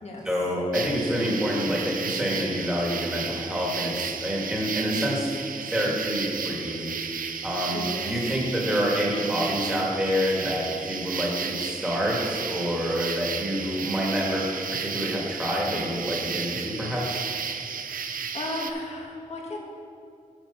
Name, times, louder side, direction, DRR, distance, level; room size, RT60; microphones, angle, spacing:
voice 1, 0.2-5.3 5.7-6.9 7.4-17.2, equal, 5° right, -4 dB, 1.8 m, -27 dB
sound 1, 0.7-18.7, right 6 dB, 70° right, 0.5 m, -33 dB
voice 2, 7.7-8.0 18.3-19.6, left 2 dB, 50° left, -1 dB, 1.4 m, -34 dB
7.9 x 6.7 x 5.6 m, 2.5 s
wide cardioid pair, 180°, 15 cm